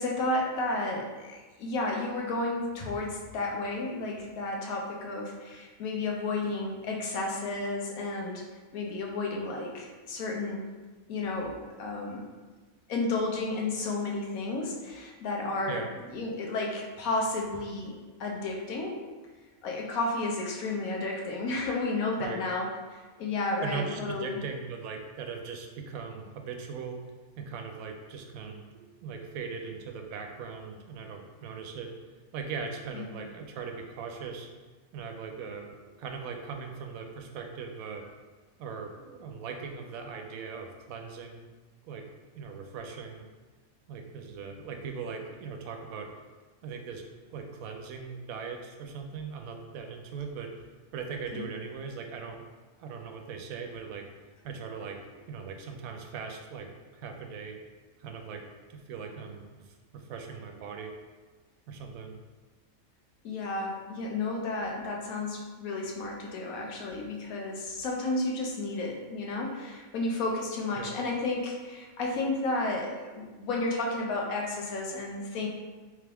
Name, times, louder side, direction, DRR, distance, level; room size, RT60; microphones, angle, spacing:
voice 1, 0.0-8.4 8.7-10.7 11.1-12.2 12.9-15.8 16.1-17.9 18.2-19.0 19.6-24.4 32.9-33.2 51.3-51.5 63.2-75.5, left 2 dB, 85° left, 0 dB, 1.2 m, -32 dB
voice 2, 23.6-27.0 27.4-31.9 32.3-34.5 34.9-38.0 38.6-41.5 41.8-42.1 42.3-43.2 43.9-46.1 46.6-47.0 47.3-50.5 50.9-52.4 52.8-54.1 54.4-57.6 58.0-58.4 58.7-60.9 61.7-62.2 70.7-70.9, right 5 dB, 85° right, 3 dB, 1.0 m, -39 dB
3.4 x 3.3 x 3.4 m, 1.3 s
omnidirectional pair, 1.4 m